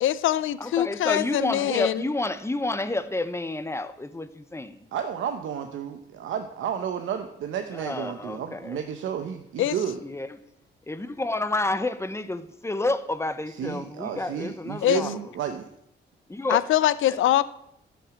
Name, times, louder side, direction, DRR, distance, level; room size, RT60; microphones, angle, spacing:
voice 1, 0.0-2.1 9.6-9.8 14.8-15.1 16.5-17.5, left 12 dB, 90° left, 0.6 m, -23 dB
voice 2, 0.6-4.8 7.7-8.8 10.0-10.3 10.9-15.2 16.3-16.6 17.1-17.2, left 2 dB, 15° left, 1.0 m, -29 dB
voice 3, 4.9-10.0 13.5-15.7, right 8 dB, 90° right, 0.9 m, -32 dB
13.5 x 6.4 x 8.2 m
cardioid pair, 85°, 20 cm